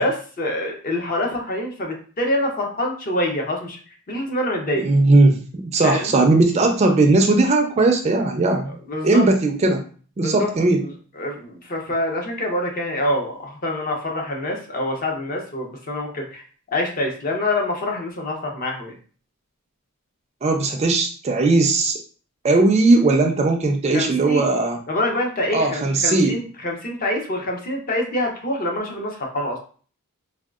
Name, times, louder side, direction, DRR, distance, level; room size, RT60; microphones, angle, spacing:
voice 1, 0.0-3.8 4.1-4.8 5.8-6.1 8.7-9.3 10.2-10.5 10.8-16.4 16.7-18.9 23.9-24.6 24.9-29.6, left 1 dB, 40° left, 1 dB, 0.6 m, -26 dB
voice 2, 4.8-8.8 9.0-9.8 10.2-10.8 20.4-22.0 22.4-24.8 25.5-26.4, right 2 dB, 30° right, 4 dB, 0.3 m, -18 dB
3.5 x 2.2 x 2.4 m, 0.42 s
head